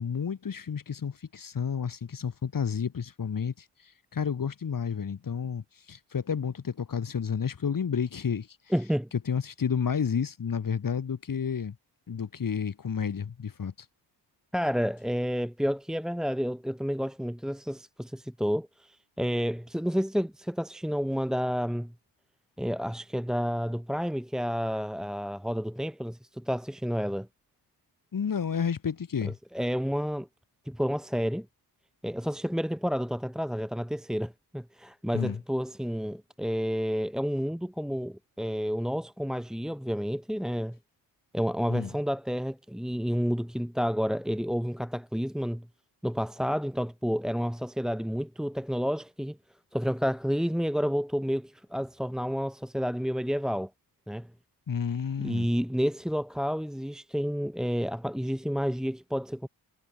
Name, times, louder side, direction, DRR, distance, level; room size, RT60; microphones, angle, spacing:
voice 1, 0.0-8.5 9.3-11.8 12.1-13.7 28.1-29.4 35.1-35.4 41.7-41.9 54.7-55.5, left 7 dB, 50° left, 6.9 m, -31 dB
voice 2, 8.7-9.1 14.5-21.9 22.6-27.3 29.2-30.3 30.7-31.5 32.0-40.8 41.3-45.7 46.0-49.4 49.7-53.7 54.1-54.3 55.2-59.5, equal, ahead, 2.6 m, -30 dB
cardioid pair, 100°, 41 cm